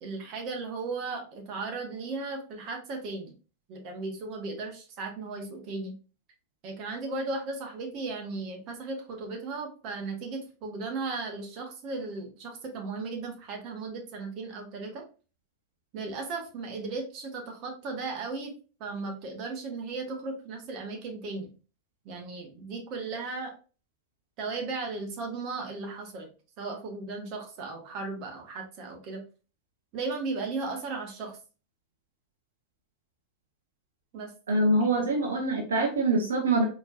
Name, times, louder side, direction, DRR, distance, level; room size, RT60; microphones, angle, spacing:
voice 1, 0.0-3.3 3.7-5.9 6.6-15.0 15.9-18.5 18.8-21.5 22.0-23.5 24.4-26.3 26.6-29.2 29.9-31.4 34.1-34.7, right 3 dB, 40° right, 2 dB, 1.1 m, -36 dB
voice 2, 34.5-36.6, right 2 dB, 65° right, 1 dB, 0.8 m, -24 dB
4.3 x 3.0 x 2.4 m, 0.35 s
figure-of-eight pair, 90°, 0 cm